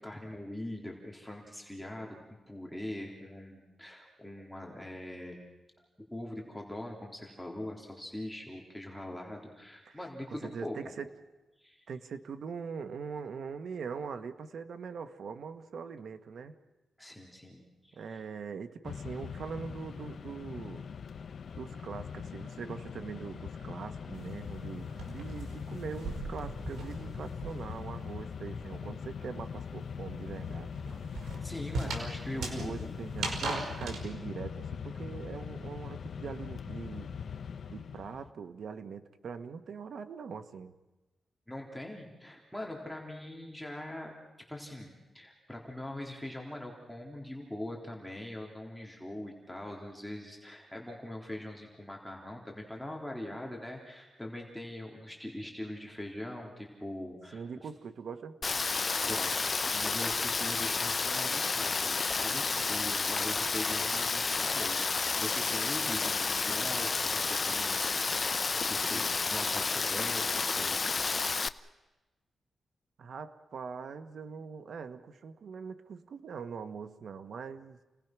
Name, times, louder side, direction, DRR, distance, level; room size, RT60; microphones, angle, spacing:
voice 1, 0.0-2.2 2.5-5.5 5.8-5.9 6.1-10.8 11.6-11.8 17.0-18.2 31.2-32.9 41.5-44.2 44.5-57.4 58.9-68.4 68.7-70.9, left 1 dB, ahead, -1 dB, 3.6 m, -42 dB
voice 2, 10.3-11.1 11.9-16.5 18.0-20.8 21.5-30.7 32.3-37.1 37.7-40.7 57.3-58.4 73.0-77.8, right 6 dB, 70° right, 9 dB, 1.3 m, -42 dB
Mechanisms, 18.8-38.3, left 6 dB, 60° left, 0.9 m, -41 dB
sound 1, 24.1-27.9 28.2-34.0, right 3 dB, 90° right, 4.8 m, -39 dB
Rain, 58.4-71.5, left 4 dB, 40° left, 0.6 m, -31 dB
29.5 x 19.0 x 6.1 m, 1.1 s
cardioid pair, 100°, 0 cm